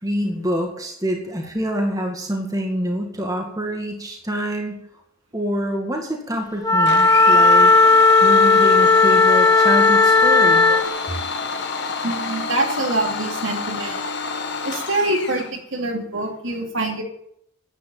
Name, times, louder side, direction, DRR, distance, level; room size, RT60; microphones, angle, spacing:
voice 1, 0.0-4.8 5.3-7.7 8.2-10.7, equal, 15° right, 1 dB, 2.0 m, -26 dB
Wind instrument woodwind instrument, 6.6-10.9, left 3 dB, 15° left, 1.0 m, -14 dB
Domestic sounds home sounds, 6.9-15.5, left 4 dB, 50° left, 1.7 m, -29 dB
voice 2, 12.0-14.0 14.6-17.0, right 2 dB, 60° right, 2 dB, 2.7 m, -25 dB
10.5 x 9.6 x 9.2 m, 0.72 s
head